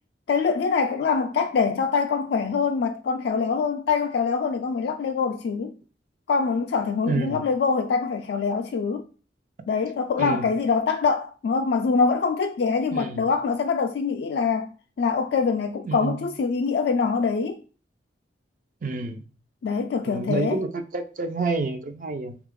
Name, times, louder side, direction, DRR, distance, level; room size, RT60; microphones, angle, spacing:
voice 1, 0.3-5.7 6.3-9.0 9.7-14.7 15.0-17.6 19.6-20.6, left 5 dB, 65° left, 0.3 m, -24 dB
voice 2, 7.1-7.4 10.2-10.5 12.9-13.3 15.8-16.3 18.8-19.2 20.1-22.4, right 3 dB, 50° right, 0.5 m, -29 dB
3.7 x 2.4 x 3.5 m
head